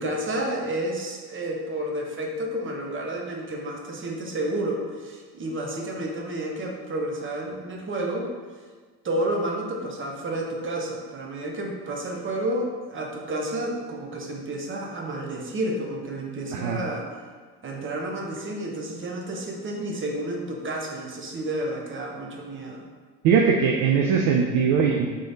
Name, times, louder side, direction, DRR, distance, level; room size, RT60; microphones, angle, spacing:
voice 1, 0.0-8.3 9.0-17.2 17.6-22.8, right 1 dB, 25° right, 0 dB, 0.9 m, -30 dB
voice 2, 16.5-16.8 23.2-25.1, right 6 dB, 45° right, 1 dB, 0.5 m, -21 dB
3.7 x 3.3 x 4.0 m, 1.5 s
figure-of-eight pair, 60°, 47 cm